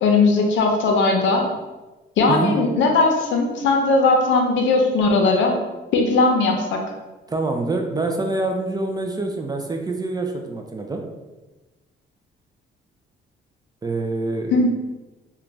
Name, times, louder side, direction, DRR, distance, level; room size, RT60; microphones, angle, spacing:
voice 1, 0.0-1.5 2.2-5.6 5.9-6.8 14.5-14.7, left 3 dB, 70° left, 2 dB, 0.6 m, -18 dB
voice 2, 7.3-11.0 13.8-14.7, right 2 dB, 20° right, 3 dB, 0.3 m, -25 dB
2.5 x 2.2 x 3.1 m, 1.1 s
cardioid pair, 90°, 20 cm